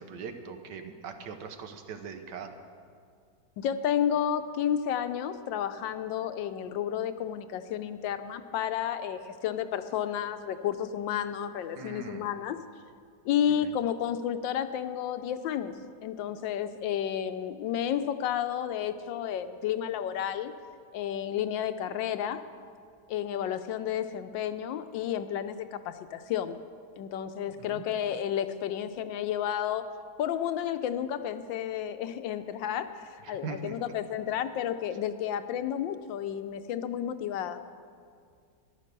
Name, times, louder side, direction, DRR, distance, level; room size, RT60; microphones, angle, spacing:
voice 1, 0.0-2.6 11.8-12.3 13.6-13.7 27.6-27.9 33.2-33.8, right 5 dB, 70° right, 7 dB, 1.5 m, -41 dB
voice 2, 3.6-12.6 13.2-15.8 16.0-20.5 20.9-22.4 23.1-26.6 27.0-29.8 30.2-37.6, left 9 dB, 80° left, 10 dB, 1.3 m, -31 dB
13.5 x 11.0 x 6.7 m, 2.2 s
omnidirectional pair, 2.1 m